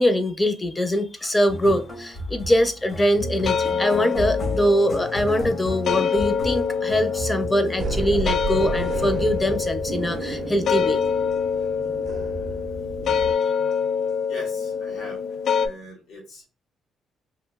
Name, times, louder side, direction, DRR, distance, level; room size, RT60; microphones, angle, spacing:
voice 1, 0.0-11.0, equal, 15° left, 8 dB, 0.5 m, -23 dB
sound 1, 1.5-7.8, left 1 dB, 45° left, 0.9 m, -33 dB
sound 2, 3.2-15.7, left 6 dB, 65° left, 0.3 m, -26 dB
sound 3, 7.8-13.3, right 3 dB, 55° right, 0.4 m, -31 dB
voice 2, 14.3-15.2 15.5-16.5, equal, 80° left, -1 dB, 1.3 m, -41 dB
3.0 x 2.6 x 2.3 m, 0.34 s
cardioid pair, 90°, 0 cm